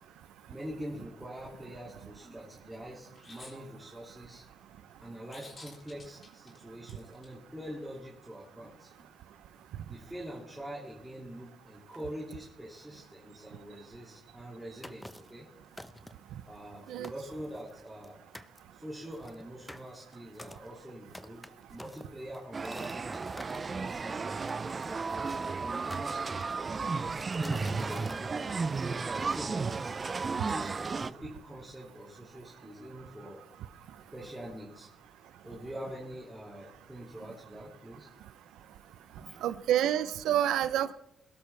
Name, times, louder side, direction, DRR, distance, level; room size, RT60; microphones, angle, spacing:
voice 1, 0.5-4.4 5.0-9.1 9.9-15.5 16.5-18.2 18.7-26.6 27.4-28.6 28.8-29.9 30.3-33.4 34.1-34.9 35.4-38.1 39.2-39.4 40.4-40.5, equal, 5° right, -4 dB, 2.7 m, -45 dB
sound 1, 3.1-3.6 5.3-7.3, left 3 dB, 40° left, 4.0 m, -51 dB
sound 2, 14.8-15.4 15.8-16.3 16.8-16.9 17.0-18.1 18.3-18.6 19.1-23.6 24.5-25.4 25.9-26.6 27.1-28.2, left 1 dB, 10° left, 0.9 m, -47 dB
sound 3, 22.5-31.1, right 4 dB, 35° right, 0.5 m, -34 dB
voice 2, 39.4-40.9, right 11 dB, 85° right, 15 dB, 0.8 m, -28 dB
21.5 x 12.5 x 3.4 m, 0.83 s
cardioid pair, 90°, 0 cm